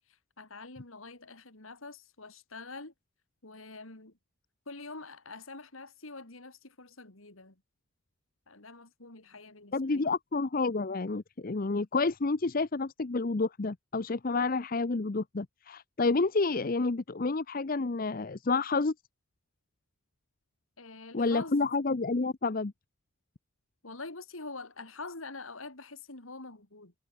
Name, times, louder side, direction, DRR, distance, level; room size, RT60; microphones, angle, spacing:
voice 1, 0.1-2.9 3.4-4.2 4.7-7.6 8.5-10.1 20.8-21.7 23.8-26.9, left 3 dB, 75° left, 3.1 m, -45 dB
voice 2, 9.7-18.9 21.1-22.7, left 3 dB, 40° left, 0.7 m, -29 dB
head